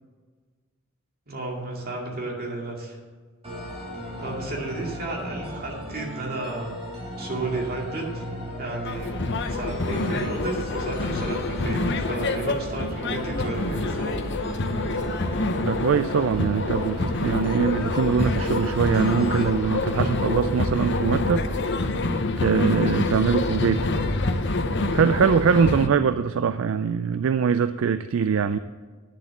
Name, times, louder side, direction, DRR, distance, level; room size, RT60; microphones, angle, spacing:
voice 1, 1.3-3.0 4.2-6.7 7.2-8.2 8.6-9.2 9.5-14.2 19.9-20.2, right 2 dB, 50° right, -1 dB, 2.4 m, -32 dB
sound 1, 3.4-19.4, right 1 dB, 30° right, 3.9 m, -37 dB
sound 2, 8.9-25.9, left 2 dB, 60° left, 0.8 m, -26 dB
voice 2, 15.6-21.5 22.4-23.9 24.5-24.6 24.9-28.6, right 6 dB, 70° right, 12 dB, 0.3 m, -23 dB
10.0 x 7.3 x 7.1 m, 1.5 s
head